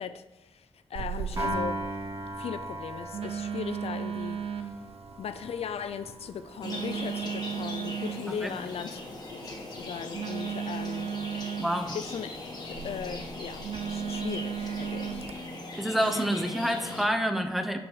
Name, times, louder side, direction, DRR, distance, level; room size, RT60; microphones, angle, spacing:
voice 1, 0.0-1.8 2.4-4.8 5.2-9.0 9.3-11.5 11.9-12.4 12.6-15.3, left 7 dB, 75° left, 0.4 m, -38 dB
Telephone, 1.0-15.3, right 7 dB, 80° right, 0.4 m, -37 dB
Piano, 1.4-7.7, right 1 dB, 40° right, 1.7 m, -38 dB
sound 1, 6.6-17.1, left 2 dB, 40° left, 1.3 m, -40 dB
voice 2, 11.6-11.9 15.8-17.8, equal, ahead, 0.7 m, -28 dB
6.2 x 6.0 x 4.7 m
wide cardioid pair, 110°, 10 cm